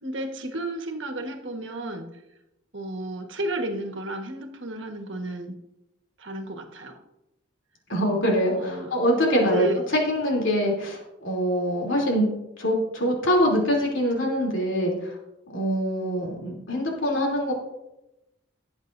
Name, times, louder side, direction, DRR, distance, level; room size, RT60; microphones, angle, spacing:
voice 1, 0.0-2.1 2.7-5.5 6.2-7.0 8.5-8.9 9.5-9.8, right 1 dB, 70° right, 4 dB, 1.5 m, -32 dB
voice 2, 7.9-9.7 10.1-12.3 12.6-15.1 15.5-17.5, equal, 70° left, -2 dB, 3.1 m, -24 dB
18.0 x 8.1 x 2.7 m, 0.91 s
head